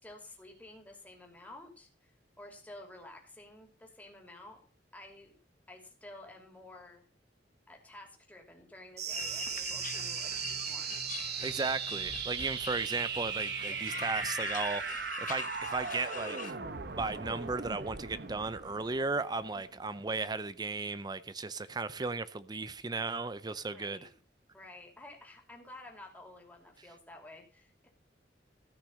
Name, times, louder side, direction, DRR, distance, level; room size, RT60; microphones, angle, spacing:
voice 1, 0.0-2.1 2.4-4.6 4.9-5.4 5.7-7.1 7.7-11.0 19.7-20.0 23.7-24.1 24.5-27.9, left 2 dB, 10° left, 2.9 m, -52 dB
sound 1, 9.0-20.0, right 7 dB, 65° right, 1.0 m, -38 dB
sound 2, 9.1-16.5, left 7 dB, 45° left, 0.9 m, -43 dB
voice 2, 11.4-16.6 16.9-24.1, right 3 dB, 25° right, 0.5 m, -35 dB
14.0 x 6.0 x 6.3 m
head